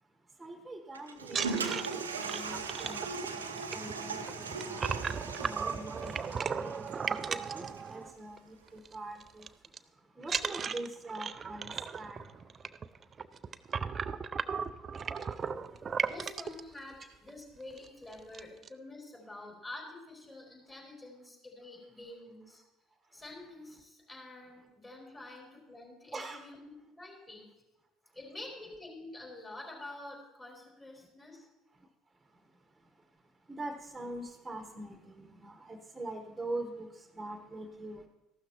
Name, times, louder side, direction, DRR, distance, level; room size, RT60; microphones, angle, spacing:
voice 1, 0.4-4.8 5.4-9.4 10.2-11.7 12.0-12.2 26.1-26.4 33.5-36.9 37.1-38.0, right 2 dB, 10° right, 4 dB, 1.2 m, -43 dB
Toilet flush, 0.9-7.9, right 4 dB, 90° right, 0.7 m, -39 dB
sound 1, 1.2-8.4 8.7-9.0 9.2-9.8 10.2-16.6 17.3-17.4 17.7-17.9 18.1-18.7, right 6 dB, 35° right, 0.4 m, -36 dB
voice 2, 16.1-22.6 23.1-27.5 28.1-31.5, left 2 dB, 20° left, -2 dB, 4.4 m, -48 dB
14.5 x 12.0 x 3.0 m, 1.0 s
hypercardioid pair, 60°, 0 cm